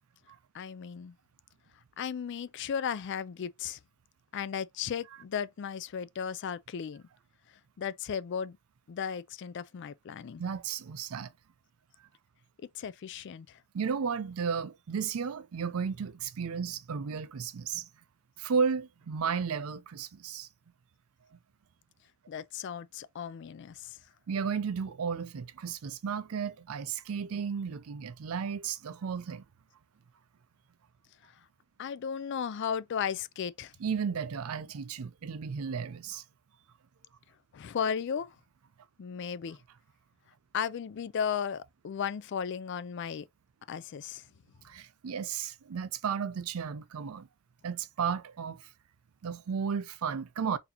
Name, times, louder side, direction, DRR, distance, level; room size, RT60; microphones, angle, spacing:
voice 1, 0.5-1.2 2.0-3.8 4.3-7.0 7.8-8.6 8.9-10.4 12.7-13.6 22.3-24.0 31.8-33.7 37.5-38.4 39.0-39.6 40.5-43.3 43.7-44.2, left 7 dB, 55° left, 0.3 m, -35 dB
voice 2, 10.4-11.3 13.7-17.9 18.4-20.5 24.3-29.4 33.8-36.2 44.6-47.3 47.6-48.6 49.2-50.6, right 6 dB, 85° right, 0.5 m, -33 dB
4.1 x 2.7 x 2.8 m
head